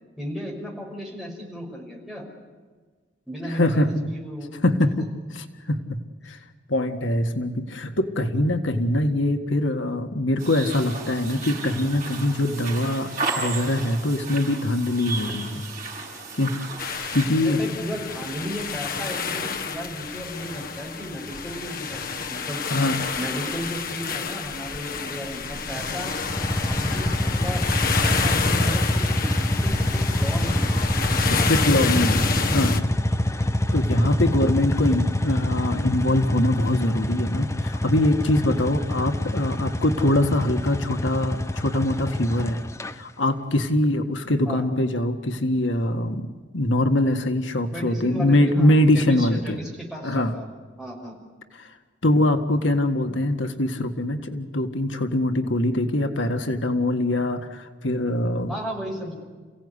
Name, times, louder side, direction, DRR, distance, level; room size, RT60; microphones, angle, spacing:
voice 1, 0.2-2.2 3.3-4.7 17.4-22.6 23.1-26.1 26.6-31.5 32.0-32.3 44.5-44.7 47.7-50.5 50.8-51.2 58.5-59.1, equal, ahead, -2 dB, 5.8 m, -35 dB
voice 2, 3.5-4.0 4.6-5.1 5.3-6.4 6.7-15.6 16.3-16.5 17.1-17.6 22.7-23.0 31.3-32.3 32.5-32.8 33.7-42.6 42.9-49.6 50.0-50.3 51.6-51.7 52.0-58.5, left 1 dB, 85° left, 6 dB, 1.8 m, -23 dB
sound 1, 10.4-17.2, right 3 dB, 40° right, 6.6 m, -34 dB
sound 2, 16.8-32.8, left 5 dB, 50° left, 1.1 m, -29 dB
sound 3, 26.2-42.9, left 1 dB, 15° left, 0.8 m, -25 dB
29.5 x 16.5 x 9.8 m, 1.5 s
head